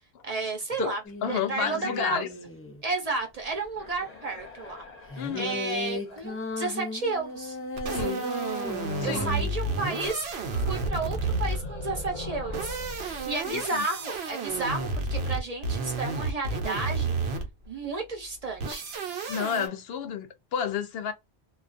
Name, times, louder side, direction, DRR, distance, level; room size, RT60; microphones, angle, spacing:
voice 1, 0.2-1.0 1.3-2.2 2.8-4.8 5.1-7.6 7.9-8.4 9.0-17.4 17.7-18.9, right 3 dB, 40° right, 0.7 m, -32 dB
sound 1, 1.0-2.8 5.1-10.1, left 1 dB, 20° left, 0.4 m, -36 dB
voice 2, 1.2-2.3 5.2-5.6 7.9-8.3 9.0-9.3 13.4-13.9 19.3-21.1, left 8 dB, 70° left, 0.8 m, -31 dB
sound 2, 3.8-7.6 8.7-9.4 9.7-14.6, left 2 dB, 40° left, 0.9 m, -42 dB
sound 3, 7.8-11.8 12.4-17.7 18.6-19.7, right 3 dB, 70° right, 1.0 m, -31 dB
2.3 x 2.3 x 2.4 m
omnidirectional pair, 1.1 m